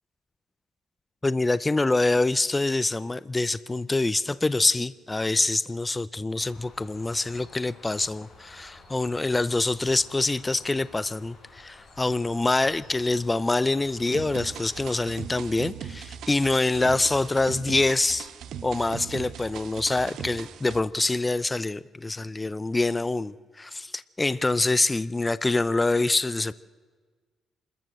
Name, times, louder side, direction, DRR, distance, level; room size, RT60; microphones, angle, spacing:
voice 1, 1.2-18.3 18.6-26.5, left 2 dB, 20° left, 18 dB, 0.6 m, -25 dB
Bird, 6.4-15.2, left 3 dB, 45° left, 6.7 m, -51 dB
sound 1, 14.1-20.8, right 9 dB, 75° right, 1.2 m, -39 dB
27.0 x 14.0 x 7.8 m, 1.5 s
cardioid pair, 90°, 0 cm